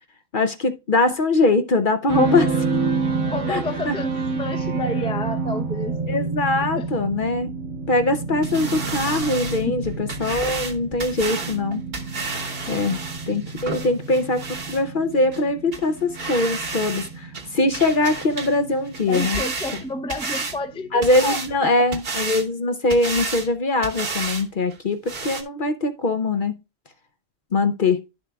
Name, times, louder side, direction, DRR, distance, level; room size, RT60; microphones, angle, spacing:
voice 1, 0.3-2.5 3.5-3.9 6.1-7.5 7.9-11.8 12.7-13.0 13.3-19.4 20.9-26.6 27.5-28.0, left 2 dB, 50° left, 0.7 m, -22 dB
sound 1, 2.1-22.0, right 4 dB, 70° right, 1.7 m, -30 dB
voice 2, 3.1-6.0 6.8-6.9 9.7-9.8 19.1-21.4, left 2 dB, 5° left, 0.4 m, -30 dB
sound 2, 8.4-14.8 15.3-15.4 15.7-15.8 16.1-17.1 17.3-18.6 18.9-20.6 21.0-21.5 21.9-22.5 22.9-23.5 23.8-24.5 24.7-24.8 25.1-25.4, right 4 dB, 50° right, 1.3 m, -31 dB
11.5 x 6.7 x 2.3 m
omnidirectional pair, 1.3 m